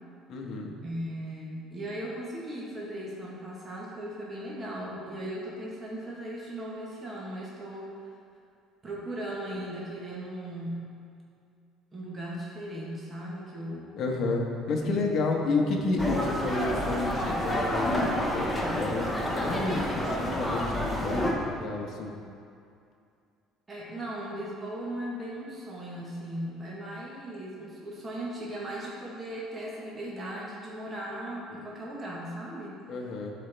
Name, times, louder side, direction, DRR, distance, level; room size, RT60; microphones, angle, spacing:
voice 1, 0.3-0.7 13.9-22.1 32.9-33.3, left 3 dB, 45° left, 0 dB, 1.0 m, -30 dB
voice 2, 0.8-8.1 8.8-10.9 11.9-13.9 14.8-15.1 23.7-32.8, right 1 dB, 20° right, -5 dB, 1.1 m, -37 dB
sound 1, 16.0-21.3, equal, 5° left, 0.8 m, -29 dB
12.0 x 4.3 x 3.3 m, 2.4 s
cardioid pair, 155°, 0 cm